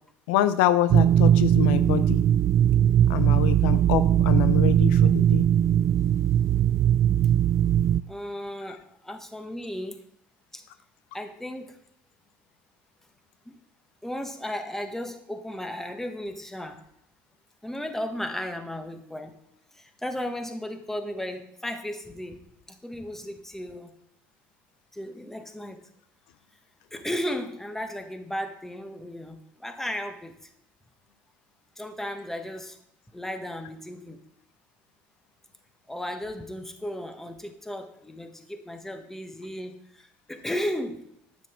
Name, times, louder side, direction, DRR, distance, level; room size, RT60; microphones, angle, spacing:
voice 1, 0.3-2.2 3.1-5.5, left 13 dB, 80° left, 12 dB, 0.5 m, -26 dB
sound 1, 0.9-8.0, right 10 dB, 45° right, 0.3 m, -20 dB
voice 2, 8.1-10.0 10.5-10.6 11.1-11.8 13.4-13.6 14.0-16.8 17.6-19.3 19.7-22.4 22.7-23.9 24.9-25.9 26.9-30.3 31.8-32.8 33.1-34.2 35.9-41.0, left 1 dB, 5° left, 6 dB, 1.4 m, -35 dB
9.5 x 5.9 x 4.5 m, 0.75 s
supercardioid pair, 85°, 6 cm